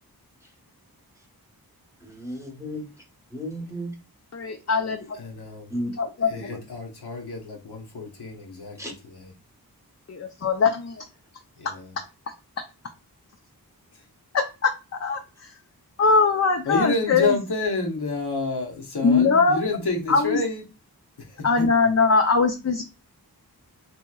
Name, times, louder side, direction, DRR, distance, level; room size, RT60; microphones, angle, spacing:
voice 1, 2.0-2.9 3.3-3.9 5.7-5.9 6.4-6.6 8.8-8.9, equal, 10° right, 0.9 m, -33 dB
voice 2, 4.3-5.2 5.9-6.5 10.1-11.0 14.3-14.7 15.0-15.6 16.0-17.3 19.0-19.6 20.1-20.4 21.4-22.8, left 4 dB, 45° left, 0.4 m, -21 dB
voice 3, 5.1-5.7 6.3-9.3 11.6-11.9 13.9-14.1 16.6-20.6 21.2-21.6, left 3 dB, 85° left, 0.9 m, -29 dB
2.9 x 2.8 x 2.2 m
wide cardioid pair, 50°, 38 cm